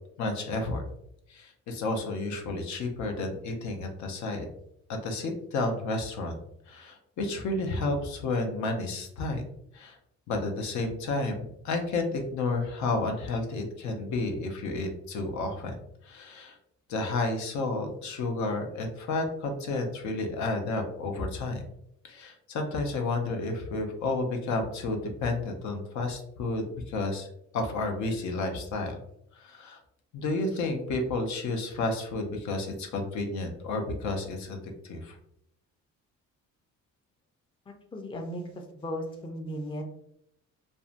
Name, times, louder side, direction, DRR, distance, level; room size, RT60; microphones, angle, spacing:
voice 1, 0.2-0.8 1.3-4.5 4.9-6.4 6.7-9.4 9.7-10.0 10.3-15.8 16.0-16.6 16.9-21.6 22.0-27.3 27.5-29.0 29.3-29.8 30.1-34.6 34.8-35.2, left 2 dB, 70° left, 4 dB, 0.6 m, -31 dB
voice 2, 37.7-38.4 38.7-39.8, equal, 15° left, 2 dB, 0.4 m, -36 dB
2.6 x 2.1 x 2.4 m, 0.75 s
cardioid pair, 90°, 30 cm